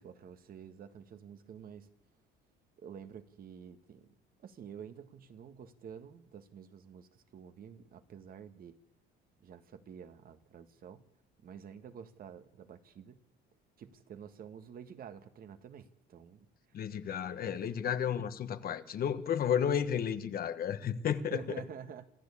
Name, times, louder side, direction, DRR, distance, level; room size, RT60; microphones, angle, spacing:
voice 1, 0.0-1.9 2.8-4.1 4.4-8.8 9.4-11.1 11.4-13.2 13.8-16.5 17.5-17.7 18.2-18.3 21.3-22.1, right 7 dB, 50° right, 9 dB, 1.6 m, -49 dB
voice 2, 16.7-21.4, left 8 dB, 50° left, 11 dB, 1.3 m, -32 dB
27.0 x 13.5 x 8.5 m, 0.85 s
cardioid pair, 120°, 19 cm